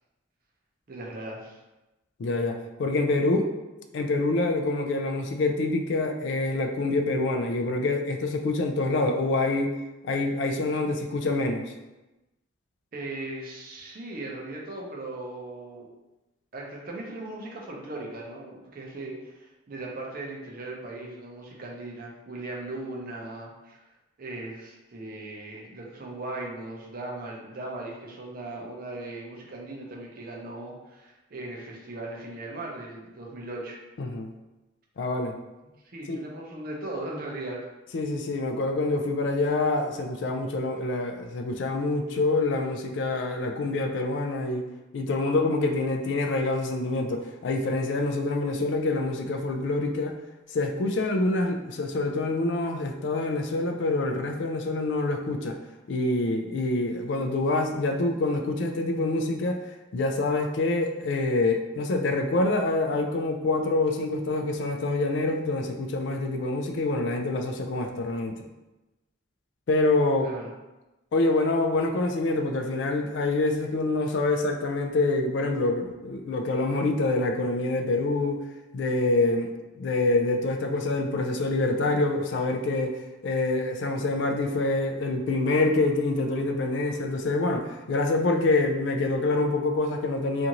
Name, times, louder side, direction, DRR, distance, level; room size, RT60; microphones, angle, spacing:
voice 1, 0.9-1.6 12.9-15.9 16.5-23.8 24.2-33.8 35.8-37.6 70.2-70.5, right 2 dB, 45° right, -2 dB, 0.5 m, -38 dB
voice 2, 2.2-3.5 3.9-9.7 10.0-11.6 34.0-34.3 35.0-35.4 36.1-36.2 37.9-44.7 44.9-50.2 50.5-55.6 55.9-59.6 59.9-68.4 69.7-70.3 71.1-78.4 78.7-90.5, left 2 dB, 60° left, 4 dB, 0.3 m, -26 dB
2.6 x 2.4 x 2.9 m, 1.0 s
head